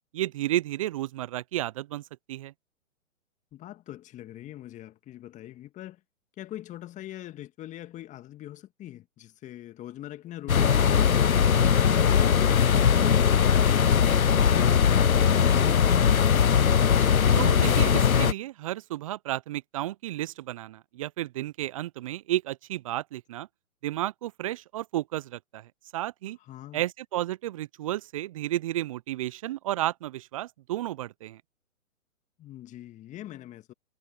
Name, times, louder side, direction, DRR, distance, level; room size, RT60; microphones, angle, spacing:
voice 1, 0.1-2.5 17.3-23.5 23.8-26.4 26.7-31.4, right 14 dB, 25° right, 0.6 m, -32 dB
voice 2, 3.5-6.0 6.4-11.4 11.8-13.9 14.3-16.4 26.4-26.8 32.4-33.7, left 13 dB, 20° left, 1.9 m, -42 dB
sound 1, 10.5-18.3, left 7 dB, 90° left, 0.7 m, -20 dB
figure-of-eight pair, 125°, 41 cm